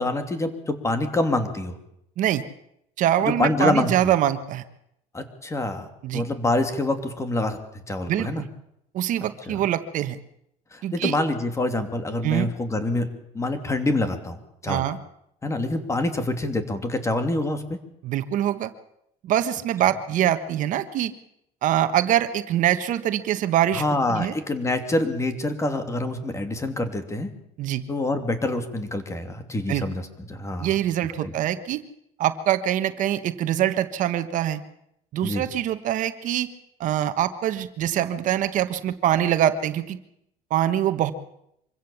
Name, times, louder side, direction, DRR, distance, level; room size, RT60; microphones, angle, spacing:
voice 1, 0.0-1.8 3.2-3.9 5.1-5.9 6.1-7.6 7.9-8.4 9.5-9.6 10.7-13.1 13.3-14.8 15.4-17.8 23.7-27.3 27.9-30.7 31.2-31.3 35.2-35.4, left 2 dB, 20° left, 7 dB, 3.0 m, -26 dB
voice 2, 2.2-2.5 3.0-4.6 6.0-6.2 8.1-8.5 8.9-10.2 10.8-11.2 12.2-12.5 14.7-15.0 18.0-18.7 19.2-21.1 21.6-23.8 24.1-24.3 27.6-27.8 29.7-29.8 30.6-31.8 32.2-34.6 35.1-36.5 36.8-40.0 40.5-41.1, right 11 dB, 55° right, 10 dB, 1.3 m, -24 dB
25.0 x 16.0 x 7.2 m, 0.78 s
supercardioid pair, 110°, 16 cm